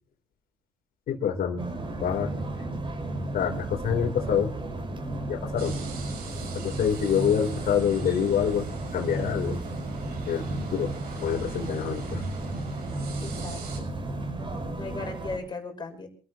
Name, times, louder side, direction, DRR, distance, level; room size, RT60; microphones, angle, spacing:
voice 1, 1.1-1.6 2.0-2.3 3.3-4.5 5.3-5.7 6.5-8.7 8.9-9.6 10.2-10.5 10.7-10.9 11.2-12.2, left 8 dB, 60° left, -2 dB, 4.1 m, -26 dB
sound 1, 1.6-15.4, right 2 dB, 30° right, 5.6 m, -33 dB
sound 2, 5.6-13.8, right 5 dB, 65° right, 6.5 m, -43 dB
voice 2, 13.2-13.9 14.7-16.1, left 3 dB, 25° left, 5 dB, 5.8 m, -37 dB
27.5 x 13.0 x 3.1 m, 0.39 s
cardioid pair, 110°, 17 cm